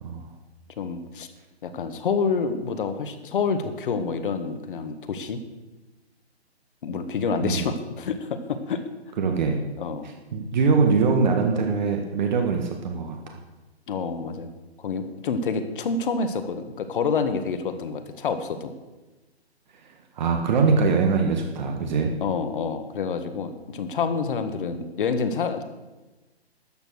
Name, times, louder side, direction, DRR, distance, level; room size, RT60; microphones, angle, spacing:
voice 1, 0.8-1.3 1.6-5.4 6.8-8.8 9.8-10.1 13.9-14.5 14.8-18.7 22.2-25.6, left 5 dB, 50° left, 9 dB, 1.6 m, -28 dB
voice 2, 9.2-9.6 10.3-13.4 19.8-22.2, right 4 dB, 45° right, 3 dB, 1.6 m, -23 dB
13.0 x 8.8 x 6.4 m, 1.1 s
hypercardioid pair, 145°, 33 cm